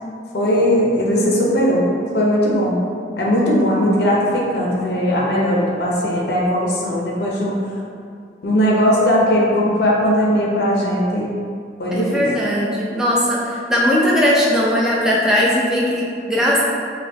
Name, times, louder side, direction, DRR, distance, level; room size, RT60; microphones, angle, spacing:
voice 1, 0.3-1.8 2.1-2.7 3.2-7.5 8.4-11.3 11.8-12.3, equal, 65° left, -3 dB, 0.6 m, -18 dB
voice 2, 11.9-16.6, equal, 5° right, -6 dB, 0.5 m, -18 dB
5.3 x 2.3 x 2.7 m, 2.3 s
head